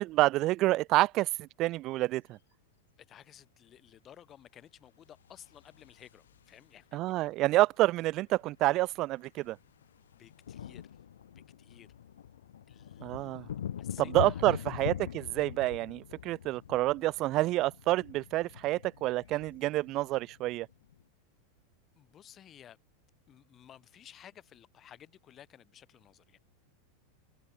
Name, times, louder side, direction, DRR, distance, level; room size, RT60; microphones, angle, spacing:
voice 1, 0.0-2.4 6.9-9.6 13.0-13.5 14.1-20.7, right 17 dB, 45° right, 0.4 m, -28 dB
voice 2, 3.1-7.0 10.2-10.8 11.3-11.9 12.7-13.5 13.8-14.6 22.0-22.8 23.3-26.4, left 10 dB, 35° left, 7.9 m, -55 dB
sound 1, 5.3-6.8 8.1-8.2 8.4-8.6 8.9-21.0, left 9 dB, 90° left, 0.4 m, -43 dB
hypercardioid pair, 110°, 0 cm